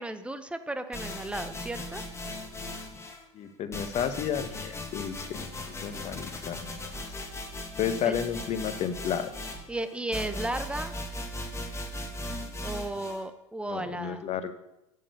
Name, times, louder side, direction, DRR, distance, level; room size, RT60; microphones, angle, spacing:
voice 1, 0.0-2.0 8.0-8.2 9.7-10.9 12.6-14.2, right 1 dB, 5° right, 10 dB, 0.8 m, -34 dB
sound 1, 0.9-3.2 3.7-13.2, left 1 dB, 15° left, 1.8 m, -38 dB
voice 2, 3.3-5.5 5.8-6.7 7.8-9.3 13.7-14.5, left 8 dB, 40° left, 10 dB, 1.1 m, -32 dB
8.8 x 6.7 x 6.6 m, 0.89 s
hypercardioid pair, 80°, 17 cm